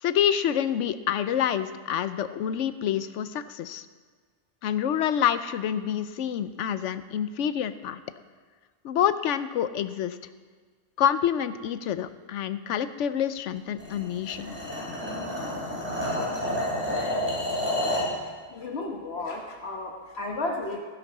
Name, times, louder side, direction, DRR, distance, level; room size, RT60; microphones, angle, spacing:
voice 1, 0.0-3.9 4.6-8.0 8.8-10.2 11.0-14.5, left 9 dB, 85° left, 13 dB, 0.9 m, -27 dB
sound 1, 13.8-18.1, left 1 dB, 10° right, 4.0 m, -29 dB
voice 2, 18.5-20.8, left 2 dB, 60° left, 1 dB, 1.4 m, -33 dB
16.0 x 10.0 x 4.1 m, 1.5 s
omnidirectional pair, 1.2 m